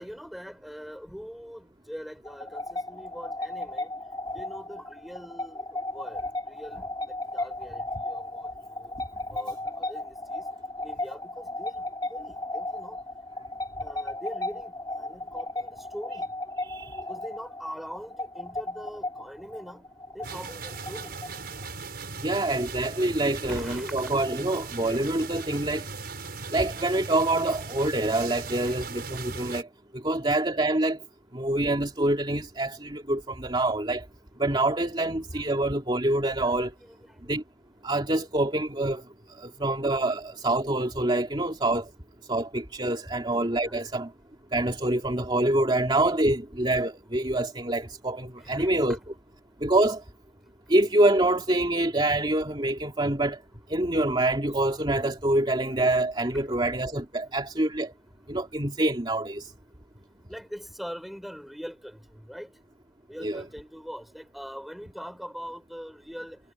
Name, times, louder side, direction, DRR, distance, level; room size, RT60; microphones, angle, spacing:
voice 1, 0.0-3.9 4.3-8.9 9.3-10.4 10.8-13.0 13.8-16.3 17.0-19.9 20.1-21.2 23.5-23.9 24.8-25.1 35.3-35.5 36.4-37.4 43.1-43.2 43.6-43.8 48.4-49.0 56.3-56.5 60.3-62.5 63.1-66.4, equal, ahead, 6.1 m, -43 dB
sound 1, 2.3-21.6, left 2 dB, 20° left, 2.7 m, -35 dB
voice 2, 16.7-17.0 22.2-25.9 26.5-29.7 29.9-31.0 31.3-34.1 34.4-36.7 37.3-37.4 37.8-39.0 39.3-41.9 42.3-44.1 44.5-49.0 49.6-50.0 50.7-53.4 53.7-57.9 58.3-59.5 63.2-63.4, right 1 dB, 25° right, 2.5 m, -26 dB
sound 2, 20.2-29.6, right 4 dB, 60° right, 6.4 m, -38 dB
head